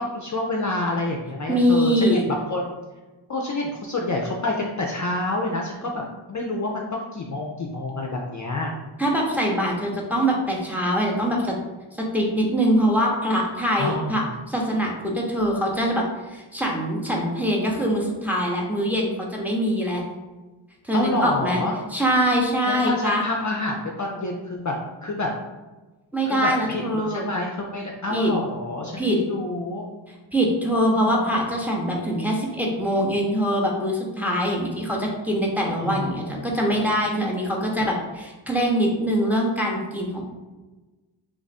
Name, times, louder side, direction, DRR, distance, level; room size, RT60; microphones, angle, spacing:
voice 1, 0.0-2.7 3.3-8.8 13.8-14.3 20.9-21.8 22.7-25.3 26.3-29.9 30.9-31.4 35.8-36.5 37.1-37.6, left 2 dB, 40° left, 0 dB, 0.5 m, -28 dB
voice 2, 1.5-2.2 9.0-11.6 12.0-20.0 20.8-21.6 21.9-23.2 26.1-27.3 28.1-28.3 29.0-29.2 30.3-40.2, equal, 5° right, -2 dB, 0.8 m, -23 dB
3.2 x 2.4 x 4.1 m, 1.2 s
cardioid pair, 50°, 49 cm